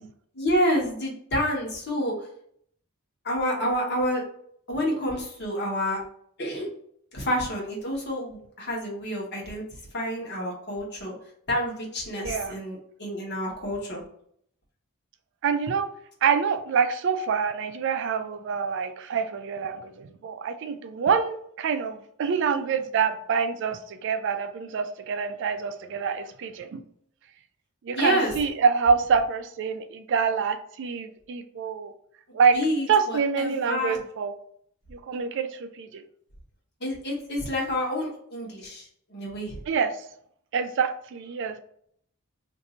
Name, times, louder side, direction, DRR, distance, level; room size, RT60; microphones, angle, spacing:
voice 1, 0.3-2.3 3.2-4.2 4.7-6.0 6.4-6.7 7.1-9.6 9.9-11.1 11.5-14.0 27.9-28.3 32.5-34.0 36.8-39.6, equal, 50° left, -2 dB, 1.1 m, -28 dB
voice 2, 12.2-12.6 15.4-15.8 16.2-26.8 27.8-31.9 32.3-32.6 32.9-34.3 34.9-36.0 39.7-39.9 40.5-41.6, right 6 dB, 55° right, 9 dB, 0.3 m, -26 dB
2.6 x 2.6 x 4.2 m, 0.65 s
head